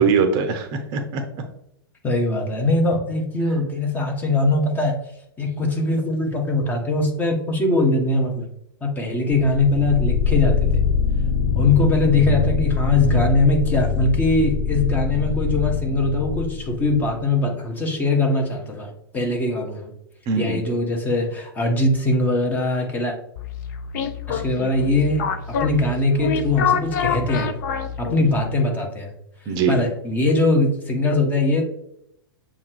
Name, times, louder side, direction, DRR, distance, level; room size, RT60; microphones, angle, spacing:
voice 1, 0.0-1.4 20.3-20.7 29.5-29.8, right 5 dB, 35° right, 6 dB, 0.6 m, -22 dB
voice 2, 2.0-5.0 5.4-8.5 8.8-10.8 11.6-19.9 20.4-23.2 24.3-27.5 28.0-29.1 29.7-31.6, left 2 dB, 15° left, 1 dB, 0.8 m, -21 dB
sound 1, 9.3-17.1, left 7 dB, 60° left, 1.0 m, -23 dB
sound 2, 23.4-28.5, left 6 dB, 45° left, 0.5 m, -26 dB
7.0 x 2.4 x 3.2 m, 0.75 s
figure-of-eight pair, 100°, 13 cm